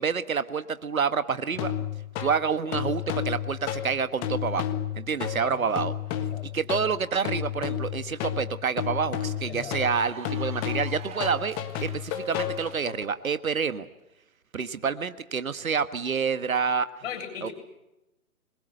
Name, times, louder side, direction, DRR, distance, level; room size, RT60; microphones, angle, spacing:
voice 1, 0.0-1.7 2.2-4.7 5.0-5.9 6.5-13.9 14.5-16.9 17.4-17.5, right 6 dB, 70° right, 12 dB, 1.6 m, -28 dB
sound 1, 1.5-13.0, left 10 dB, 20° left, 1.5 m, -32 dB
voice 2, 6.2-6.5 9.4-9.7 17.0-17.5, left 8 dB, 45° left, 7 dB, 7.8 m, -38 dB
Cheering / Applause, 7.6-12.9, right 8 dB, 15° right, 1.5 m, -48 dB
26.5 x 22.0 x 8.0 m, 0.93 s
figure-of-eight pair, 135°, 44 cm